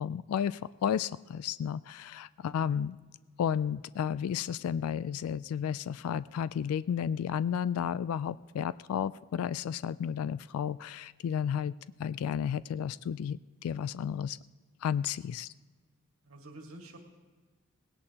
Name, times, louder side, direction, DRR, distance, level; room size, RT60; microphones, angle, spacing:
voice 1, 0.0-3.0 3.4-11.7 12.0-14.4 14.8-15.5, left 8 dB, 90° left, 17 dB, 0.3 m, -32 dB
voice 2, 16.2-17.0, right 2 dB, 80° right, 2 dB, 1.9 m, -49 dB
19.0 x 17.0 x 2.9 m, 1.4 s
head